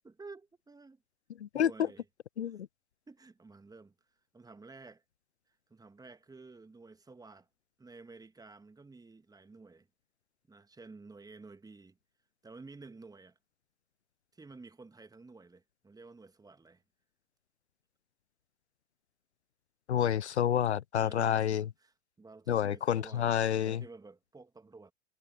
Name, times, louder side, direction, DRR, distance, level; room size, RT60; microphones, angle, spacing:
voice 1, 0.0-1.0 1.5-2.1 2.4-2.6 3.1-3.9 4.3-5.0 5.7-7.5 7.8-9.9 10.5-12.0 12.4-13.4 14.3-16.8 21.0-24.9, right 3 dB, 10° right, 2.0 m, -52 dB
voice 2, 1.4-1.9 2.4-2.7 19.9-21.7 22.5-23.8, left 9 dB, 85° left, 0.5 m, -29 dB
figure-of-eight pair, 80°, 33 cm